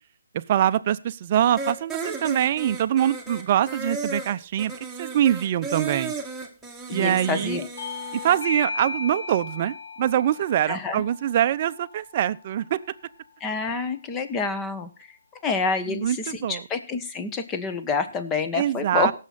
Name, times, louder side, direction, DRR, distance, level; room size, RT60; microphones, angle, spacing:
voice 1, 0.3-4.7 5.0-6.1 6.9-7.6 8.1-12.8 15.9-16.6 18.5-19.1, right 11 dB, 35° right, 12 dB, 0.7 m, -24 dB
sound 1, 1.6-8.4, right 4 dB, 5° right, 1.8 m, -34 dB
voice 2, 6.9-7.7 10.7-11.0 13.4-14.9 15.4-19.1, left 4 dB, 15° left, 9 dB, 1.3 m, -27 dB
Bell / Doorbell, 7.8-12.8, left 3 dB, 60° left, 2.3 m, -36 dB
17.5 x 7.4 x 4.2 m, 0.35 s
hypercardioid pair, 150°, 0 cm